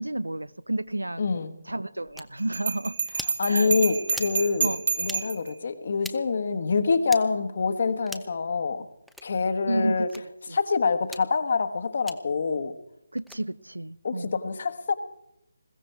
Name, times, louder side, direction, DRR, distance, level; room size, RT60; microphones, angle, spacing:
voice 1, 0.0-1.3 1.6-3.0 3.5-3.7 4.6-4.8 9.7-10.6 13.1-14.4, right 1 dB, 90° right, 20 dB, 0.6 m, -31 dB
voice 2, 1.2-1.5 3.4-4.7 5.0-8.9 9.2-10.1 10.5-12.7 14.0-15.0, left 4 dB, 50° left, 10 dB, 1.3 m, -26 dB
Electric Blanket Switch, 2.2-2.3 3.1-3.4 4.1-4.4 5.0-5.2 6.0-6.2 7.1-7.2 8.0-8.3 9.1-9.3 10.1-10.2 11.0-11.2 12.1-12.2 13.2-13.4, equal, ahead, 0.6 m, -39 dB
Bell, 2.5-5.5, right 5 dB, 50° right, 1.3 m, -28 dB
21.0 x 15.0 x 4.6 m, 0.86 s
figure-of-eight pair, 155°, 0 cm